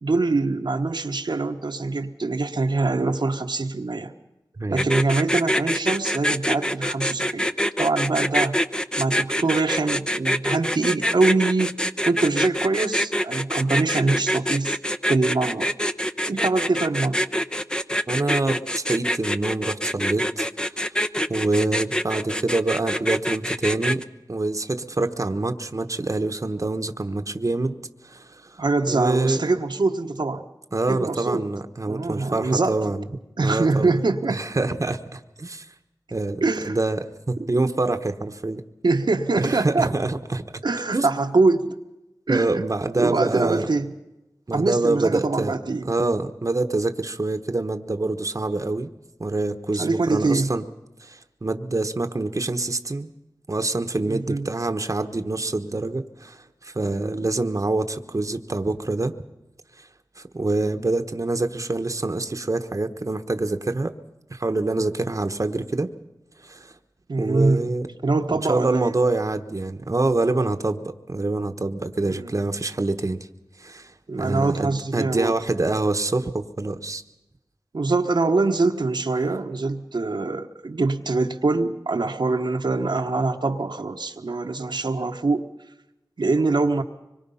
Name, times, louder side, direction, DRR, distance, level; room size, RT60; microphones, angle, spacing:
voice 1, 0.0-4.1 4.7-7.5 7.8-8.6 9.0-11.8 12.1-14.8 15.1-15.7 16.3-17.2 28.6-30.4 30.9-31.5 31.9-32.9 33.4-34.4 36.4-36.8 37.4-37.7 38.8-39.9 40.6-41.8 42.3-42.6 43.0-43.9 44.5-45.9 49.8-50.5 54.1-54.5 67.1-67.7 68.0-68.9 72.0-72.3 74.1-75.3 77.7-85.5 86.2-86.8, right 3 dB, 75° right, 3 dB, 1.2 m, -23 dB
voice 2, 4.6-4.9 18.1-20.5 20.7-20.9 21.3-24.0 24.3-27.8 28.0-29.4 30.7-33.1 33.4-34.0 34.3-35.7 36.1-38.6 39.4-40.6 40.9-41.1 42.3-43.7 44.5-45.6 45.8-48.9 49.2-50.7 51.0-53.1 53.5-59.1 59.8-59.9 60.2-63.9 64.3-65.9 66.4-66.8 67.2-67.9 68.3-73.3 73.6-77.0, right 2 dB, 45° right, 7 dB, 1.1 m, -26 dB
sound 1, 4.8-24.0, equal, 10° left, 0.8 m, -25 dB
25.0 x 22.5 x 5.6 m, 0.94 s
wide cardioid pair, 50°, 8 cm